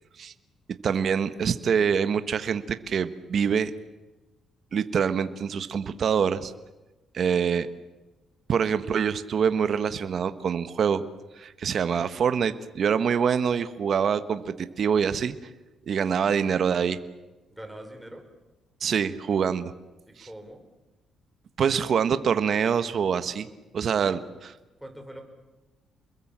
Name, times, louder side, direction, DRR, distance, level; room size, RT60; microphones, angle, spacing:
voice 1, 0.8-3.7 4.7-6.5 7.1-7.7 8.5-11.0 11.3-15.4 15.9-17.0 18.8-19.7 20.2-20.3 21.6-23.5 23.7-24.2, right 7 dB, 55° right, 11 dB, 1.4 m, -25 dB
voice 2, 17.5-18.3 20.1-20.6 24.1-24.2 24.8-25.2, right 1 dB, 5° right, 4 dB, 5.9 m, -43 dB
29.0 x 21.5 x 7.5 m, 1.1 s
cardioid pair, 90°, 0 cm